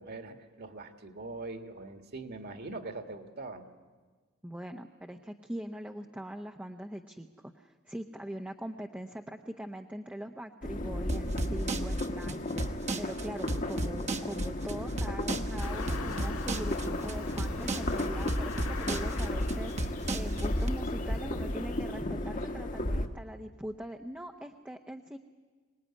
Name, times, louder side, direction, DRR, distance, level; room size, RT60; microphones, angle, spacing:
voice 1, 0.0-3.7, right 3 dB, 50° right, 7 dB, 1.9 m, -42 dB
voice 2, 4.4-25.2, equal, 5° right, 3 dB, 0.8 m, -42 dB
sound 1, 10.6-23.1, left 1 dB, 40° left, 1.3 m, -34 dB
sound 2, 11.1-20.7, right 2 dB, 30° right, 1.1 m, -34 dB
sound 3, 15.6-22.0, left 2 dB, 85° left, 2.1 m, -41 dB
25.0 x 19.5 x 9.9 m, 1.4 s
head